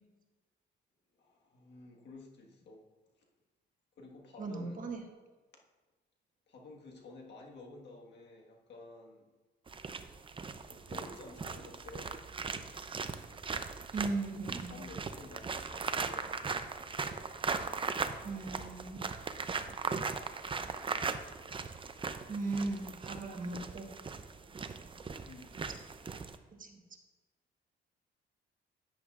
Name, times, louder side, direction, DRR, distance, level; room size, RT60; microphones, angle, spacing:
voice 1, 1.1-2.9 3.2-3.3 3.9-4.9 6.5-9.3 10.7-12.4 14.7-16.6 25.3-25.6, left 2 dB, 60° left, 0 dB, 1.6 m, -52 dB
voice 2, 4.4-5.1 13.9-14.8 18.2-19.0 22.3-23.9 26.6-26.8, right 3 dB, 45° right, 3 dB, 1.3 m, -37 dB
sound 1, 9.7-26.4, right 4 dB, 25° right, 0.6 m, -39 dB
10.5 x 9.1 x 2.5 m, 1.2 s
cardioid pair, 90°, 20 cm